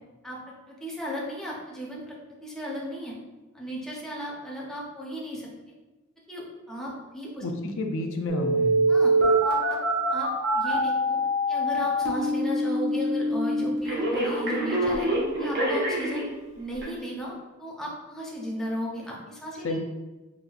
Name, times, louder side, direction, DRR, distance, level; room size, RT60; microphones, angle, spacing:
voice 1, 0.2-3.2 3.5-5.5 6.3-7.4 8.9-9.1 9.4-9.8 10.1-11.2 11.5-15.1 15.4-16.3 16.6-19.8, equal, ahead, -4 dB, 0.7 m, -35 dB
voice 2, 7.4-8.9 19.6-19.8, left 2 dB, 65° left, 4 dB, 0.4 m, -30 dB
Telephone, 8.3-16.3 16.8-16.9, equal, 55° right, 0.9 m, -25 dB
4.0 x 2.6 x 2.4 m, 1.2 s
head